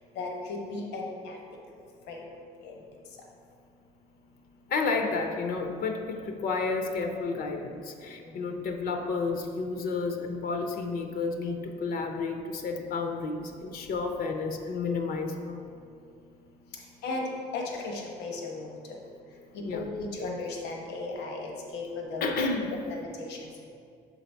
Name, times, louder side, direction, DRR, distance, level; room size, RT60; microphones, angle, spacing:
voice 1, 0.2-1.3 2.1-2.2 2.6-2.7 17.0-17.3 17.5-18.7 19.7-22.3 22.8-23.4, left 3 dB, 85° left, 0 dB, 1.0 m, -35 dB
voice 2, 4.7-15.7 19.6-19.8 22.2-22.7, left 4 dB, 60° left, 4 dB, 0.7 m, -31 dB
6.5 x 4.1 x 4.4 m, 2.3 s
cardioid pair, 110°, 17 cm